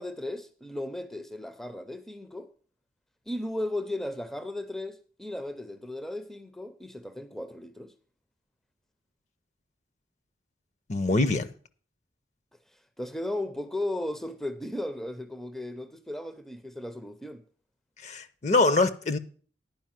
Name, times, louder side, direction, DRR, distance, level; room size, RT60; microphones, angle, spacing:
voice 1, 0.0-2.5 3.3-7.9 13.0-17.4, left 1 dB, ahead, 0.5 m, -35 dB
voice 2, 10.9-11.5 18.0-19.2, left 2 dB, 40° left, 0.6 m, -24 dB
10.5 x 5.1 x 7.4 m
head